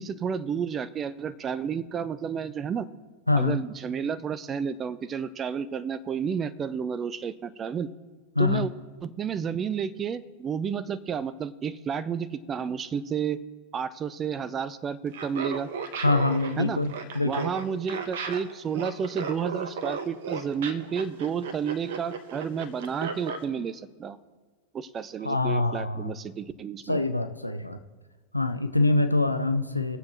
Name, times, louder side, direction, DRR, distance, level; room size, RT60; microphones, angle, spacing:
voice 1, 0.0-2.9 3.3-7.9 8.4-8.7 9.0-13.4 13.7-15.7 16.6-16.8 17.2-24.2 24.7-27.0, right 7 dB, 25° right, 16 dB, 0.5 m, -31 dB
voice 2, 3.3-3.6 8.4-8.7 16.0-17.5 25.2-26.1 26.9-27.8 28.3-30.0, left 2 dB, 85° left, 7 dB, 0.5 m, -25 dB
Laughter, 15.1-23.4, right 5 dB, 55° right, 1.0 m, -35 dB
21.0 x 7.4 x 3.0 m, 1.3 s
figure-of-eight pair, 90°, 0 cm